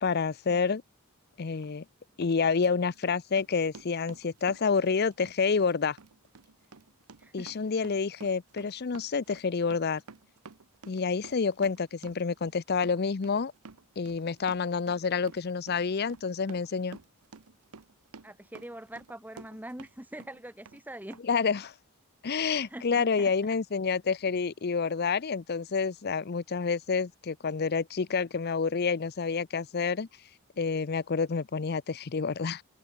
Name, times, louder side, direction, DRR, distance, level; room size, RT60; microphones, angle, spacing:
voice 1, 0.0-0.8 1.4-1.8 2.2-6.0 7.3-10.0 10.9-13.5 14.0-17.0 21.3-21.7 22.2-30.1 30.6-32.6, left 5 dB, 45° left, 0.5 m, -28 dB
Run, 1.6-1.7 2.2-19.9 20.2-20.8 21.1-21.2, right 4 dB, 80° right, 0.9 m, -51 dB
voice 2, 7.2-7.5 18.2-21.2 22.4-23.3, right 1 dB, 10° right, 1.3 m, -44 dB
head